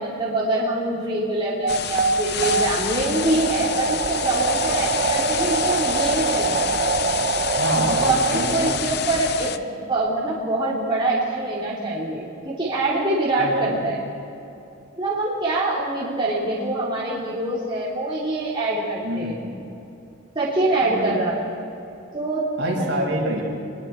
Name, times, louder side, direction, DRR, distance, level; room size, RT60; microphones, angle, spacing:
voice 1, 0.0-6.7 7.8-14.0 15.0-19.3 20.3-21.3 22.1-22.4 22.7-23.0, right 2 dB, 25° right, -7 dB, 3.1 m, -24 dB
sound 1, 1.6-8.8, right 4 dB, 40° right, 0.5 m, -24 dB
sound 2, 1.7-9.6, left 8 dB, 50° left, 0.7 m, -28 dB
voice 2, 7.5-8.8 13.4-13.8 19.0-19.7 20.8-21.2 22.6-23.4, equal, 60° right, -2 dB, 5.5 m, -26 dB
26.5 x 22.5 x 4.5 m, 2.8 s
head